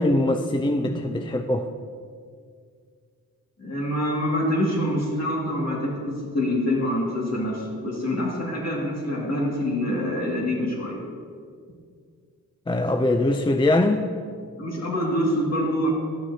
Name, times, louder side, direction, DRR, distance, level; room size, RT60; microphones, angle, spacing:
voice 1, 0.0-1.7 12.7-14.1, left 2 dB, 15° left, 6 dB, 0.4 m, -22 dB
voice 2, 3.6-11.0 14.6-15.9, left 1 dB, 45° left, -3 dB, 2.1 m, -25 dB
11.5 x 6.1 x 2.8 m, 2.1 s
cardioid pair, 55°, 35 cm